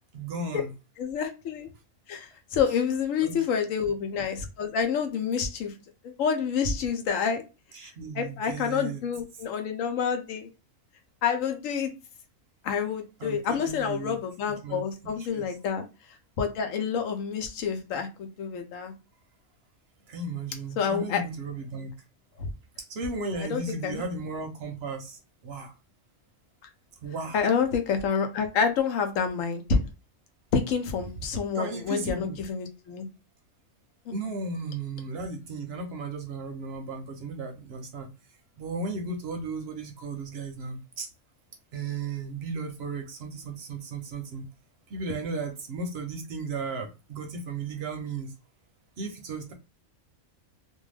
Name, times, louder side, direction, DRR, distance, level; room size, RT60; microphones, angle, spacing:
voice 1, 0.1-0.7 3.2-3.4 7.7-9.0 13.2-14.2 14.6-15.5 20.1-21.9 22.8-25.7 27.0-27.4 31.6-32.4 34.1-38.1 38.6-41.1 41.7-44.4 44.9-48.3 49.0-49.5, right 3 dB, 60° right, 0.7 m, -35 dB
voice 2, 1.0-1.7 2.1-5.7 6.0-7.4 7.8-10.5 11.2-11.9 12.6-15.8 16.4-18.9 20.8-21.2 22.4-22.5 23.2-24.0 27.3-29.9 30.5-33.1, left 6 dB, 80° left, 1.0 m, -28 dB
2.6 x 2.2 x 3.1 m
omnidirectional pair, 1.4 m